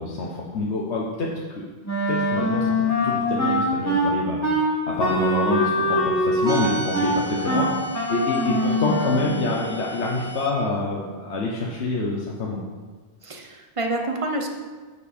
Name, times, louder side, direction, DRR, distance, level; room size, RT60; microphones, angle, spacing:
voice 1, 0.0-1.6 2.1-4.4 4.9-7.7 8.1-12.6, left 2 dB, 80° left, -3 dB, 1.2 m, -26 dB
Wind instrument woodwind instrument, 1.9-9.4, equal, 15° left, 1.6 m, -23 dB
sound 1, 6.4-10.5, right 3 dB, 55° left, 1.3 m, -35 dB
voice 2, 13.2-14.5, right 2 dB, 30° right, 3 dB, 0.9 m, -28 dB
8.3 x 6.8 x 4.2 m, 1.4 s
omnidirectional pair, 1.1 m